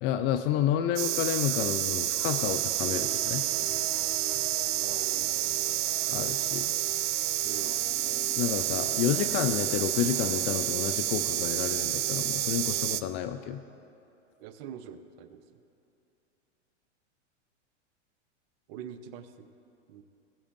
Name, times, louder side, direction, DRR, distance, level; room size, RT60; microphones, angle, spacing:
voice 1, 0.0-3.4 6.1-6.8 8.4-13.6, left 10 dB, 30° left, 9 dB, 0.4 m, -30 dB
sound 1, 1.0-13.0, right 13 dB, 75° right, 0.5 m, -29 dB
sound 2, 2.1-12.8, right 2 dB, 25° right, 2.5 m, -46 dB
voice 2, 4.8-5.7 7.4-7.7 14.4-15.4 18.7-19.5 19.9-20.0, right 8 dB, 50° right, 9 dB, 0.9 m, -44 dB
21.0 x 8.1 x 2.6 m, 2.7 s
hypercardioid pair, 115°, 36 cm